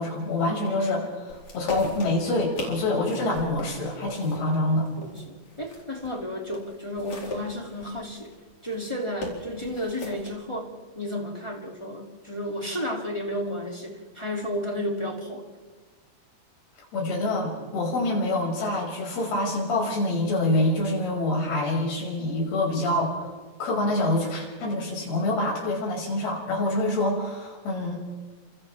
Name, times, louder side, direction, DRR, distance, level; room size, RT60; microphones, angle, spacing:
voice 1, 0.0-4.9 16.9-23.3 23.6-28.0, left 2 dB, 70° left, -3 dB, 7.7 m, -26 dB
sound 1, 1.3-6.2 6.5-10.3, left 2 dB, 45° left, 5.2 m, -38 dB
voice 2, 5.0-8.3 8.6-15.5, equal, 10° left, 0 dB, 1.6 m, -32 dB
29.5 x 27.0 x 3.5 m, 1.3 s
omnidirectional pair, 4.7 m